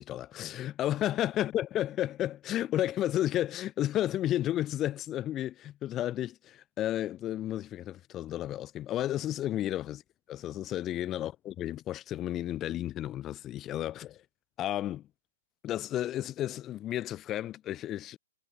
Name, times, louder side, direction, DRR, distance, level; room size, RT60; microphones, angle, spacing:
voice 1, 0.0-10.0 10.3-14.2 14.6-15.1 15.6-18.2, left 13 dB, 25° left, 1.3 m, -32 dB
figure-of-eight pair, 120°, 0 cm